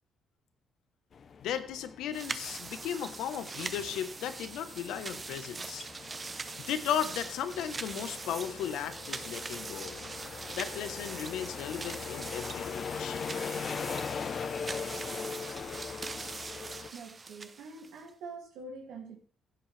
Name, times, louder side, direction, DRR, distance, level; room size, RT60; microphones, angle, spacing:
sound 1, 1.1-16.9, left 6 dB, 50° left, 0.8 m, -41 dB
voice 1, 1.4-5.9 6.6-10.0 10.5-13.2, left 9 dB, 85° left, 11 dB, 1.1 m, -36 dB
sound 2, 2.1-18.1, right 4 dB, 30° right, 0.8 m, -42 dB
voice 2, 16.9-19.2, right 3 dB, 90° right, 0 dB, 2.5 m, -45 dB
16.0 x 7.8 x 3.4 m, 0.41 s
cardioid pair, 90°, 0 cm